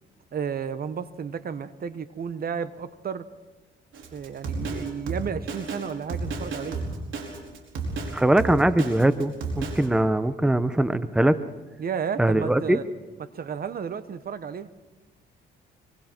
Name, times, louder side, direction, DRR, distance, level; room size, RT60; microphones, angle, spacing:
voice 1, 0.3-3.3 4.1-6.8 11.8-12.8 13.2-14.7, right 7 dB, 50° right, 13 dB, 1.0 m, -32 dB
Drum kit, 3.9-9.9, right 3 dB, 75° right, 4.8 m, -32 dB
voice 2, 8.1-11.4 12.2-12.8, right 1 dB, 5° right, 12 dB, 0.9 m, -21 dB
25.0 x 24.5 x 4.5 m, 1.2 s
cardioid pair, 90°, 20 cm